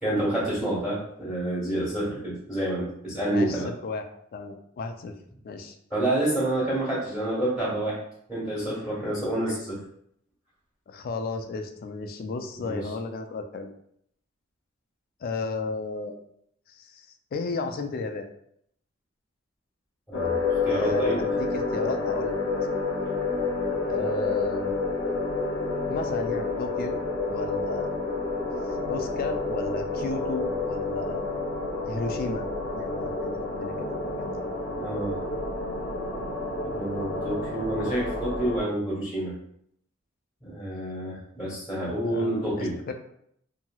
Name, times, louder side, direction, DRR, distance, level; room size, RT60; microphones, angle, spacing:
voice 1, 0.0-3.7 5.9-8.0 8.3-9.8 12.5-12.9 20.1-21.2 23.7-23.8 34.8-35.2 36.6-39.3 40.4-42.7, right 1 dB, ahead, -9 dB, 1.4 m, -28 dB
voice 2, 3.3-4.0 4.3-5.1 5.4-5.8 10.9-13.7 15.2-16.2 16.7-18.3 20.7-22.7 23.9-24.7 25.9-27.0 27.3-27.9 28.9-31.3 31.9-32.5 32.7-34.5 42.0-42.9, left 3 dB, 45° left, 6 dB, 0.3 m, -33 dB
sound 1, 20.1-38.6, left 3 dB, 75° left, 0.7 m, -29 dB
2.9 x 2.7 x 2.3 m, 0.70 s
head